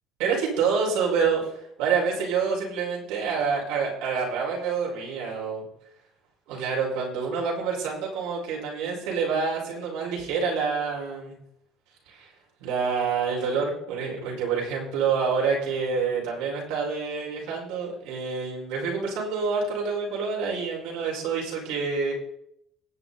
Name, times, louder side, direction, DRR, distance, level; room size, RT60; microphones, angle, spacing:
voice 1, 0.2-5.6 6.5-11.4 12.1-12.3 12.6-22.1, right 5 dB, 85° right, -2 dB, 4.8 m, -27 dB
20.0 x 7.8 x 4.1 m, 0.75 s
supercardioid pair, 90°, 0 cm